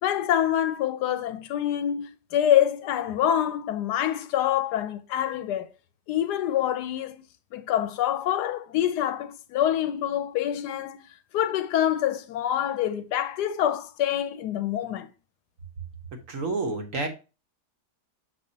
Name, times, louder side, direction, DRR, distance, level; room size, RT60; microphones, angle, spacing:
voice 1, 0.0-5.7 6.1-7.2 7.5-11.1 11.3-15.1, left 11 dB, 90° left, 1.2 m, -26 dB
voice 2, 16.3-17.1, right 3 dB, 55° right, 1.3 m, -29 dB
6.4 x 5.5 x 2.7 m
omnidirectional pair, 1.7 m